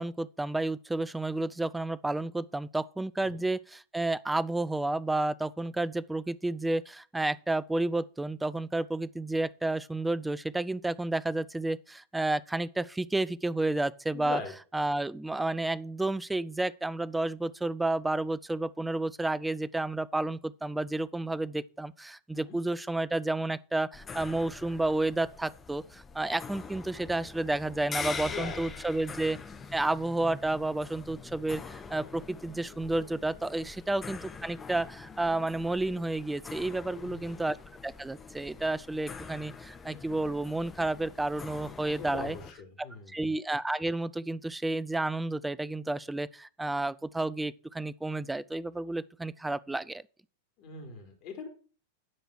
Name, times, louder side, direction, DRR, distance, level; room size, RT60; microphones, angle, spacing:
voice 1, 0.0-14.4 14.7-29.4 29.7-37.6 37.8-42.4 42.8-50.0, right 2 dB, 5° right, 0.6 m, -31 dB
voice 2, 14.1-14.5 22.3-22.6 28.2-28.9 36.8-37.3 42.1-43.2 50.6-51.5, left 5 dB, 45° left, 3.8 m, -41 dB
sound 1, 23.9-42.5, left 5 dB, 20° left, 1.5 m, -44 dB
11.5 x 5.0 x 6.3 m
figure-of-eight pair, 95°, 0 cm